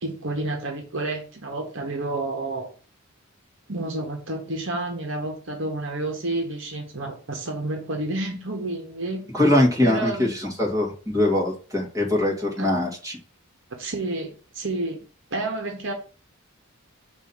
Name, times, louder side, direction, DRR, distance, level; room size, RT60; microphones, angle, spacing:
voice 1, 0.0-2.7 3.7-9.2 9.8-10.4 12.6-12.9 13.8-15.0 15.3-15.9, right 2 dB, 60° right, 2 dB, 1.2 m, -30 dB
voice 2, 9.3-13.2, left 1 dB, 15° right, -2 dB, 1.6 m, -22 dB
6.2 x 2.7 x 5.5 m, 0.37 s
head